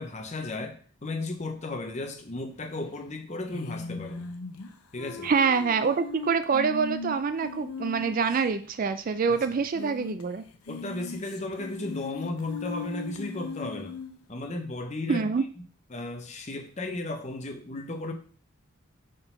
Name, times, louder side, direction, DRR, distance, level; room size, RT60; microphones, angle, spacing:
voice 1, 0.0-4.3 4.9-5.3 9.3-9.6 10.7-14.0 14.3-15.3 15.9-18.1, left 2 dB, 30° left, 6 dB, 0.7 m, -35 dB
sound 1, 3.5-8.4 8.6-8.7 9.0-9.1 9.6-10.2 10.5-14.2, left 4 dB, 85° left, 0.7 m, -38 dB
voice 2, 5.2-10.4 15.1-15.4, right 5 dB, 40° right, 11 dB, 0.3 m, -26 dB
4.7 x 3.8 x 5.4 m, 0.43 s
head